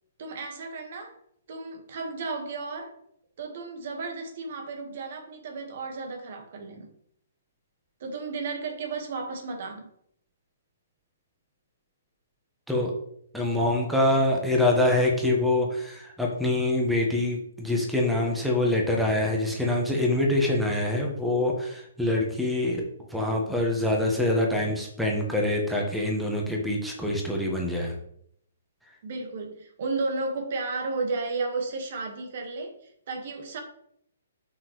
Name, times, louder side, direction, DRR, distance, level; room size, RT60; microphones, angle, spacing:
voice 1, 0.2-1.2 1.5-3.0 3.4-6.9 8.0-9.9 29.0-33.6, right 3 dB, 50° right, 3 dB, 1.7 m, -33 dB
voice 2, 13.3-22.8 23.1-27.9, left 1 dB, ahead, -1 dB, 1.5 m, -25 dB
7.4 x 5.9 x 3.3 m, 0.69 s
figure-of-eight pair, 125°, 0 cm